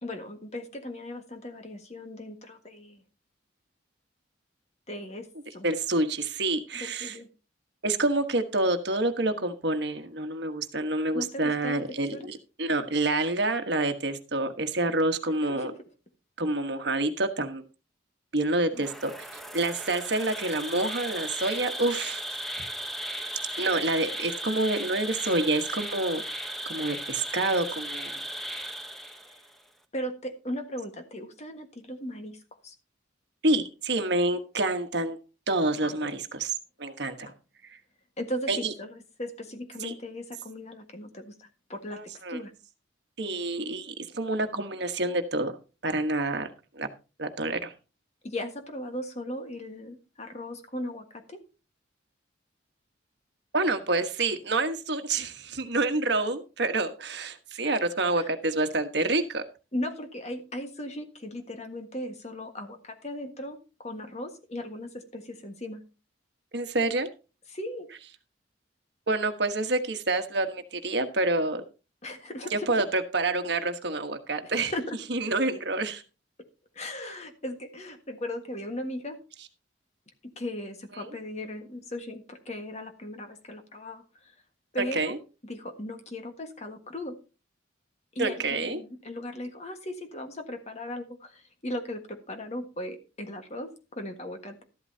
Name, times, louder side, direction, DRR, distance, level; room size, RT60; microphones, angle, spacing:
voice 1, 0.0-3.0 4.9-5.7 6.7-7.3 11.1-11.8 12.1-12.3 15.4-15.7 18.7-18.8 29.3-29.4 29.9-32.7 35.8-36.1 37.2-37.3 38.2-42.5 48.2-51.4 58.2-58.3 59.7-65.8 67.5-67.9 72.0-72.8 74.4-75.0 76.4-76.5 76.7-79.2 80.3-84.3 84.7-87.2 88.1-94.6, left 1 dB, 35° left, 6 dB, 1.5 m, -37 dB
voice 2, 5.6-7.2 7.8-15.7 16.4-17.6 18.3-19.2 19.5-22.2 23.6-26.2 26.7-28.1 33.4-35.2 35.5-36.5 36.8-37.3 37.7-37.8 38.5-38.7 39.8-39.9 41.9-42.4 43.2-45.5 45.8-46.5 46.7-46.9 47.2-47.7 53.5-59.4 66.5-67.1 69.1-71.6 72.5-74.7 75.1-76.0 81.0-81.1 84.9-85.2 88.2-88.8, right 2 dB, 60° right, 7 dB, 1.3 m, -28 dB
Insect, 18.7-29.5, right 1 dB, ahead, 0.9 m, -36 dB
13.0 x 12.0 x 2.8 m, 0.32 s
head